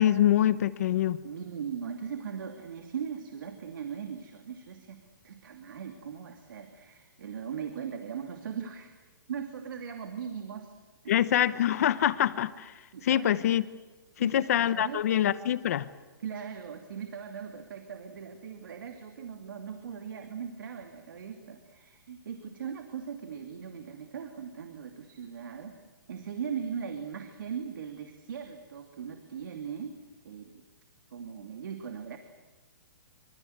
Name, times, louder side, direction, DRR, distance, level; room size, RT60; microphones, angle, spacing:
voice 1, 0.0-1.2 11.1-12.7 13.0-13.6 14.2-15.9, left 11 dB, 45° left, 15 dB, 0.9 m, -25 dB
voice 2, 1.2-8.9 9.3-10.7 11.0-11.2 12.9-13.4 14.2-15.0 16.2-25.8 26.1-30.0 30.2-30.6 31.1-32.2, right 7 dB, 65° right, 5 dB, 2.8 m, -39 dB
25.5 x 25.0 x 8.1 m, 1.3 s
hypercardioid pair, 165°, 12 cm